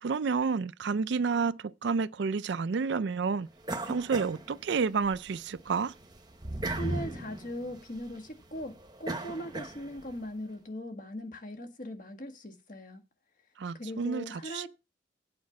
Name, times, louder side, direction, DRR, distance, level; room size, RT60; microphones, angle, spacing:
voice 1, 0.0-3.5 3.9-5.9 13.6-14.7, right 5 dB, 60° right, 0.4 m, -30 dB
sound 1, 3.6-5.2 5.6-10.2, right 2 dB, 20° right, 1.0 m, -37 dB
voice 2, 6.7-13.0 13.7-14.7, equal, 45° left, 1.6 m, -40 dB
8.6 x 5.1 x 7.1 m
head